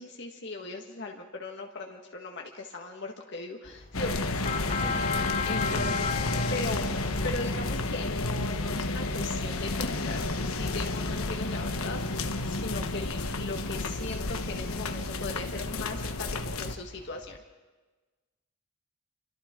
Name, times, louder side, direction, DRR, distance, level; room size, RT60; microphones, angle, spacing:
voice 1, 0.0-4.4 5.4-6.1 6.5-6.8 7.2-17.4, left 2 dB, 55° left, 1 dB, 1.7 m, -38 dB
sound 1, 3.6-17.4, left 5 dB, 30° left, 0.8 m, -39 dB
sound 2, 3.9-16.7, left 2 dB, 85° left, 1.2 m, -31 dB
voice 2, 4.8-6.7, equal, 15° left, 0 dB, 2.6 m, -42 dB
29.0 x 25.5 x 3.8 m, 1.3 s
head